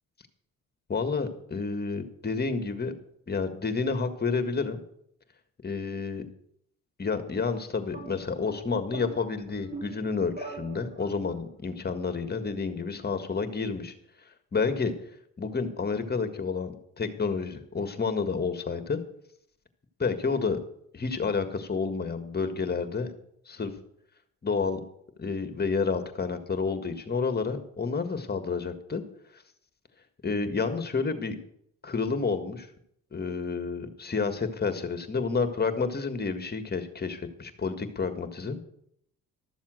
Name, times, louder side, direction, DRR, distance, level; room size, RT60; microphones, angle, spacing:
voice 1, 0.9-2.9 3.3-4.8 5.6-6.2 7.0-13.9 14.5-14.9 15.4-19.0 20.0-20.6 20.9-23.1 23.5-23.7 24.4-24.8 25.2-29.0 30.2-31.4 31.8-32.7 33.1-38.6, left 4 dB, 35° left, 9 dB, 1.7 m, -30 dB
sound 1, 7.9-11.4, right 3 dB, 30° right, 2.9 m, -44 dB
13.0 x 7.2 x 7.7 m, 0.71 s
cardioid pair, 90°, 30 cm